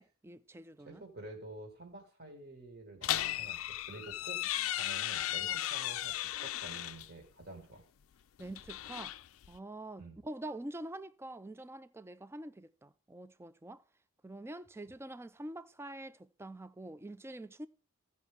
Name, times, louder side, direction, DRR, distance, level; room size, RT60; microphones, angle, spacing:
voice 1, 0.0-1.0 5.5-5.6 8.4-9.1 9.5-13.8 14.2-17.7, right 1 dB, 10° right, 0.3 m, -46 dB
voice 2, 0.8-4.4 4.7-7.8 10.0-10.2, right 2 dB, 45° right, 2.1 m, -49 dB
sound 1, 3.0-7.1 8.4-9.6, left 13 dB, 70° left, 0.4 m, -36 dB
16.0 x 5.4 x 3.6 m
head